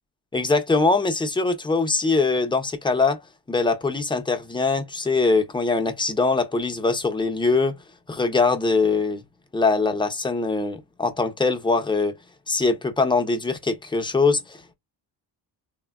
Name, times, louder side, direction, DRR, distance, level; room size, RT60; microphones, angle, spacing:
voice 1, 0.3-3.2 3.5-7.7 8.1-9.2 9.5-12.1 12.5-14.7, left 3 dB, 10° left, 0.6 m, -22 dB
3.3 x 2.2 x 2.2 m
cardioid pair, 95°, 45 cm